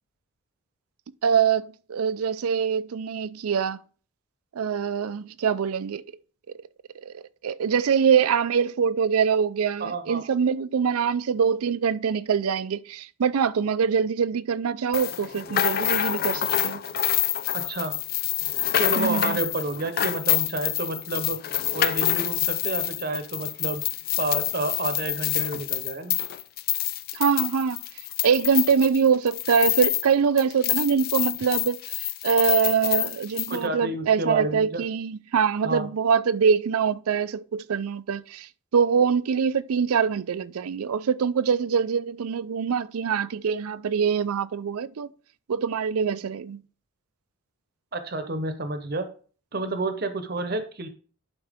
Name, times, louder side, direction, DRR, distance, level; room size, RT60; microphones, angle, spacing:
voice 1, 1.2-3.8 4.6-6.0 7.0-16.8 19.0-19.4 27.1-27.8 28.2-45.1 45.5-46.6, right 6 dB, 85° right, 0.4 m, -24 dB
voice 2, 9.8-10.2 17.5-17.9 18.8-21.4 21.7-23.8 24.2-26.1 33.5-34.8 35.6-35.9 47.9-49.1 49.5-50.9, right 2 dB, 45° right, 0.8 m, -30 dB
sound 1, 14.9-30.1 30.4-33.6, left 12 dB, 45° left, 0.3 m, -27 dB
11.0 x 4.4 x 3.5 m
head